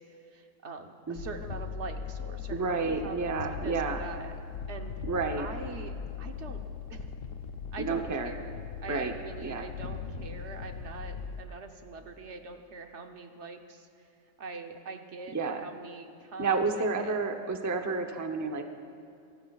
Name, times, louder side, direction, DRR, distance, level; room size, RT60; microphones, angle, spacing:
voice 1, 0.1-4.4 4.7-4.9 5.4-6.6 6.9-7.1 7.7-8.5 8.8-14.1 14.4-17.2, right 4 dB, 60° right, 5 dB, 1.2 m, -43 dB
sound 1, 1.2-11.4, left 6 dB, 75° left, 1.1 m, -39 dB
voice 2, 2.5-4.0 5.0-5.5 7.8-8.3 8.9-9.1 9.4-9.7 15.3-15.6 16.4-18.6, right 4 dB, 20° right, 4 dB, 0.6 m, -30 dB
23.5 x 18.5 x 2.4 m, 2.6 s
omnidirectional pair, 1.4 m